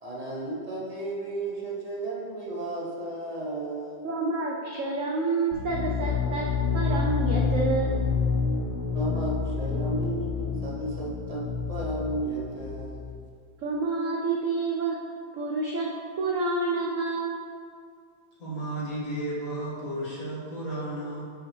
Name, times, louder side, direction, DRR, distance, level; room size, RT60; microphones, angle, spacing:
voice 1, 0.0-4.0 8.9-13.0, right 2 dB, 40° right, -4 dB, 0.5 m, -34 dB
voice 2, 4.0-6.5 6.7-8.0 13.6-15.0 15.3-15.9 16.2-17.5, right 3 dB, 85° right, -2 dB, 0.6 m, -28 dB
sound 1, 5.5-13.2, left 5 dB, 70° left, 1.0 m, -28 dB
voice 3, 18.4-21.2, right 1 dB, 45° left, -8 dB, 2.3 m, -33 dB
9.5 x 4.9 x 3.2 m, 2.2 s
omnidirectional pair, 2.1 m